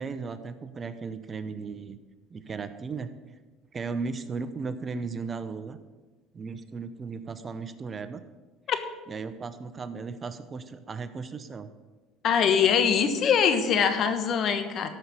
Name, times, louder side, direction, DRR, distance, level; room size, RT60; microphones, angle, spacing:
voice 1, 0.0-2.0 2.3-3.1 3.7-5.8 6.3-8.2 9.1-11.7, right 4 dB, 30° right, 11 dB, 0.8 m, -36 dB
voice 2, 12.2-14.9, left 7 dB, 50° left, 9 dB, 1.3 m, -23 dB
13.0 x 5.6 x 6.9 m, 1.3 s
supercardioid pair, 90°, 0 cm